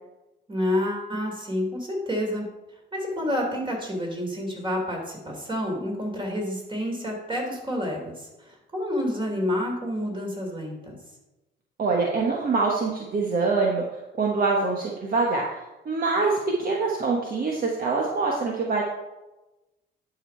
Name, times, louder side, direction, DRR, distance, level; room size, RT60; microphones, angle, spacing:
voice 1, 0.5-2.4 2.9-11.0, left 1 dB, 25° right, 0 dB, 3.2 m, -29 dB
voice 2, 11.8-13.8 14.2-18.8, right 4 dB, 45° right, -1 dB, 1.4 m, -24 dB
11.0 x 5.2 x 4.5 m, 1.0 s
cardioid pair, 90°, 20 cm